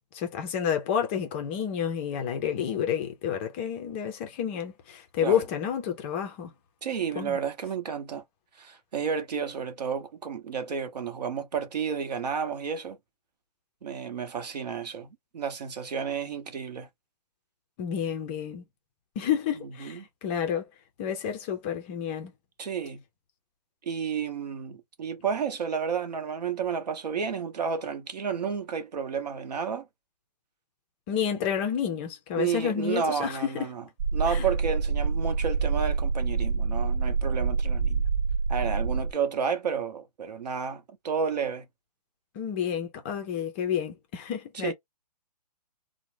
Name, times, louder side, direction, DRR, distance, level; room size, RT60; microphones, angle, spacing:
voice 1, 0.1-6.5 7.2-7.4 17.8-18.6 19.2-20.7 21.0-22.3 31.1-33.7 34.3-34.5 42.3-44.7, left 8 dB, 20° left, 0.4 m, -30 dB
voice 2, 6.8-8.2 8.6-13.0 13.8-15.1 15.3-16.9 19.8-20.0 22.6-23.0 23.9-29.9 32.4-33.8 34.1-38.0 38.5-41.6 44.5-44.7, right 6 dB, 75° right, 0.8 m, -31 dB
sound 1, 34.0-39.1, right 4 dB, 55° right, 0.5 m, -26 dB
2.6 x 2.0 x 3.1 m
hypercardioid pair, 145°, 21 cm